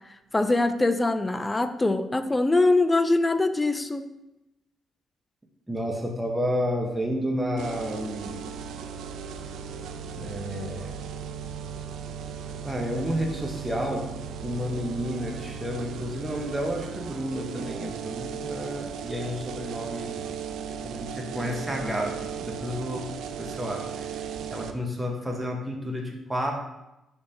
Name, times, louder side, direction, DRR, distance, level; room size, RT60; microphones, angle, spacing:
voice 1, 0.3-4.0, left 2 dB, 15° left, 9 dB, 0.4 m, -23 dB
voice 2, 5.7-8.4 10.2-10.9 12.6-14.1 14.4-20.2 20.8-23.0 23.4-26.5, equal, 10° right, 0 dB, 0.9 m, -31 dB
sound 1, 7.6-24.7, right 7 dB, 80° right, 0.4 m, -36 dB
10.5 x 3.5 x 2.8 m, 0.94 s
cardioid pair, 90°, 0 cm